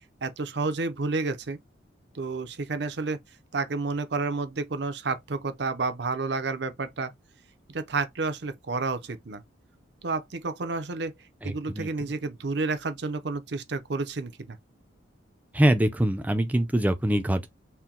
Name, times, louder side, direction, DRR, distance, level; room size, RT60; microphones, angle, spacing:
voice 1, 0.2-1.6 2.1-3.2 3.5-7.1 7.7-9.4 10.0-11.1 11.4-14.6, right 3 dB, 60° right, 0.6 m, -30 dB
voice 2, 11.4-11.9 15.5-17.5, right 1 dB, 10° right, 0.5 m, -24 dB
4.3 x 2.2 x 3.7 m
head